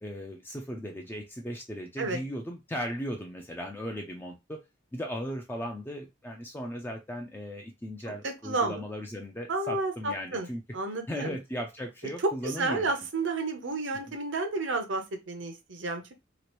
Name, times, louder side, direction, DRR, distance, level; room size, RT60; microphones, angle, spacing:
voice 1, 0.0-4.6 4.9-10.6 11.1-12.9 14.1-14.2, equal, 10° left, 0.4 m, -37 dB
voice 2, 8.2-8.8 9.5-10.5 10.7-11.4 12.4-16.1, right 3 dB, 80° right, 0.8 m, -31 dB
3.0 x 2.5 x 3.0 m
head